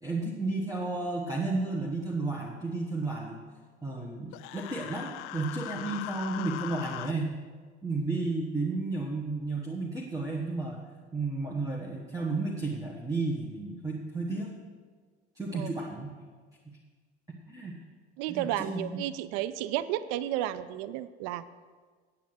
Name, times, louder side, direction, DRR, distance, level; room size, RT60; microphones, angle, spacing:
voice 1, 0.0-3.4 3.8-7.3 7.8-14.5 15.3-16.1 16.6-16.8 17.5-17.8 18.3-18.9, right 3 dB, 10° right, -2 dB, 1.3 m, -32 dB
Human voice, 4.3-7.1, left 15 dB, 45° left, 0.4 m, -40 dB
voice 2, 18.2-21.4, right 13 dB, 50° right, 15 dB, 0.5 m, -32 dB
9.0 x 8.5 x 6.4 m, 1.5 s
figure-of-eight pair, 60°, 33 cm